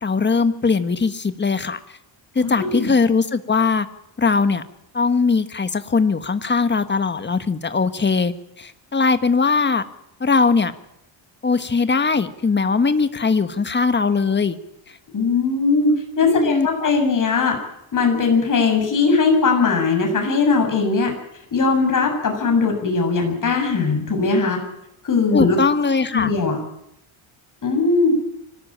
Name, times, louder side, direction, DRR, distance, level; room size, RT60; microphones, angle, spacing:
voice 1, 0.0-1.8 2.3-3.9 4.2-4.6 4.9-9.9 10.2-10.7 11.4-14.6 16.2-16.9 25.3-26.3, left 4 dB, 20° left, 11 dB, 1.5 m, -20 dB
voice 2, 2.4-2.9 15.1-17.6 17.9-21.1 21.5-24.6 25.0-25.6 26.1-26.6 27.6-28.1, left 4 dB, 40° left, 3 dB, 7.3 m, -19 dB
24.5 x 18.0 x 8.9 m, 0.82 s
cardioid pair, 135°, 47 cm